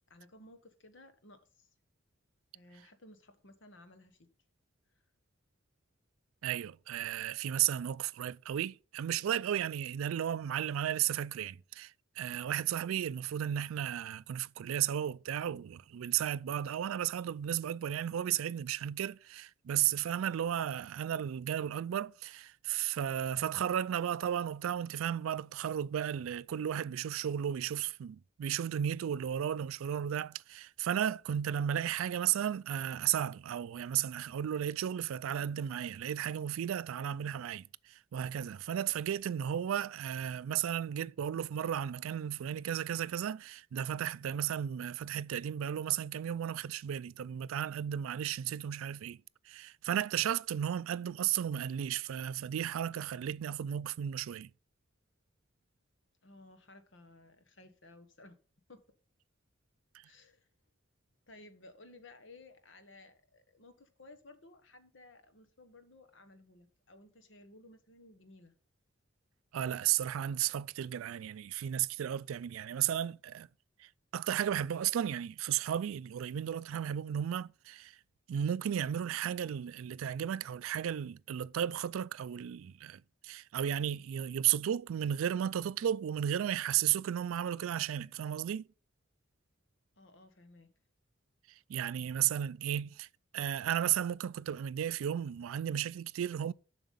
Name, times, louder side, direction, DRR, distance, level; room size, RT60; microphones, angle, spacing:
voice 1, 0.1-1.7 2.5-4.3 56.2-58.4 58.7-58.8 60.0-60.5 61.3-68.5 90.0-90.7, left 2 dB, 65° left, 1.3 m, -57 dB
voice 2, 6.4-49.2 49.5-54.5 69.5-73.5 73.8-78.0 78.3-88.7 91.7-93.1 93.3-96.5, right 10 dB, 85° right, 0.3 m, -34 dB
7.5 x 5.9 x 5.5 m
head